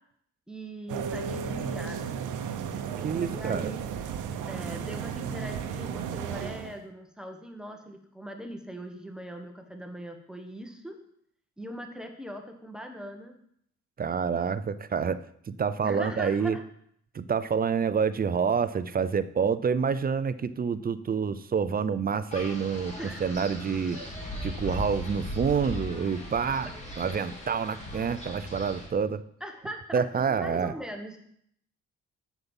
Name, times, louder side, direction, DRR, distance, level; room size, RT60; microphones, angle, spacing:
voice 1, 0.5-2.3 3.3-3.8 4.5-10.9 11.6-13.4 15.8-16.6 22.9-23.2 29.4-31.2, equal, ahead, 4 dB, 1.3 m, -41 dB
sound 1, 0.9-6.8, right 7 dB, 85° right, 0.8 m, -34 dB
voice 2, 3.0-3.7 14.0-15.2 15.5-16.6 17.1-22.9 23.2-24.0 24.4-26.7 27.0-29.2 29.9-30.7, right 6 dB, 30° right, 14 dB, 0.5 m, -27 dB
Wind, 22.3-28.9, left 1 dB, 25° left, 2.6 m, -38 dB
7.8 x 7.3 x 5.4 m, 0.68 s
cardioid pair, 90°, 30 cm